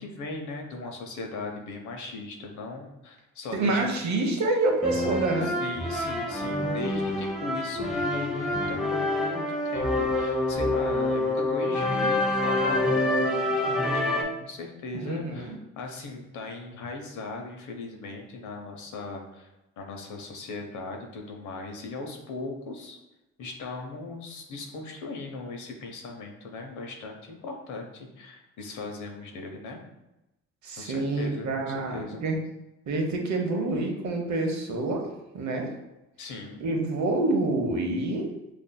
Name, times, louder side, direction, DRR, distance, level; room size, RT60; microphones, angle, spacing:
voice 1, 0.0-3.9 5.4-19.5 19.8-23.0 23.4-29.8 30.8-32.2 36.2-36.6, left 3 dB, 75° left, 3 dB, 0.8 m, -38 dB
voice 2, 3.5-5.6 14.9-15.6 30.6-32.3 32.9-35.1 35.3-35.7 36.6-38.3, right 2 dB, 65° right, 2 dB, 0.8 m, -27 dB
sound 1, 4.8-14.2, left 1 dB, ahead, 0.7 m, -27 dB
5.3 x 2.6 x 2.2 m, 0.95 s
cardioid pair, 90°, 30 cm